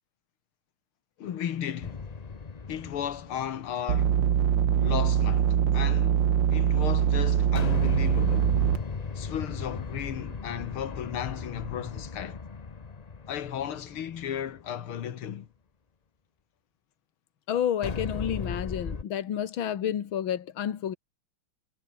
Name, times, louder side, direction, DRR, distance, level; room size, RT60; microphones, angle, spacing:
voice 1, 1.2-2.0 2.7-4.2 4.8-6.2 6.5-8.5 9.2-12.4 13.3-15.5, left 9 dB, 90° left, 2.3 m, -35 dB
sound 1, 1.8-4.4 7.5-14.8 17.8-19.0, left 5 dB, 35° left, 0.6 m, -37 dB
sound 2, 3.9-8.8, right 9 dB, 65° right, 1.9 m, -23 dB
voice 2, 17.5-20.9, left 9 dB, 70° left, 2.3 m, -30 dB
omnidirectional pair, 2.3 m